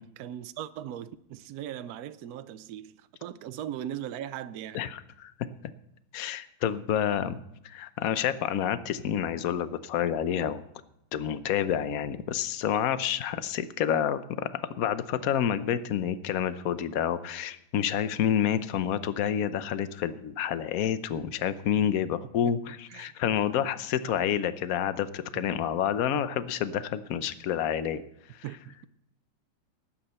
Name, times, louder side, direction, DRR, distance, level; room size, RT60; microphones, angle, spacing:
voice 1, 0.2-4.8 22.4-22.5 22.9-23.1 28.4-28.8, right 11 dB, 75° right, 0.8 m, -39 dB
voice 2, 4.7-5.3 6.1-7.4 7.6-10.6 11.1-28.0, left 9 dB, 60° left, 1.0 m, -29 dB
19.0 x 8.9 x 4.3 m
omnidirectional pair, 2.2 m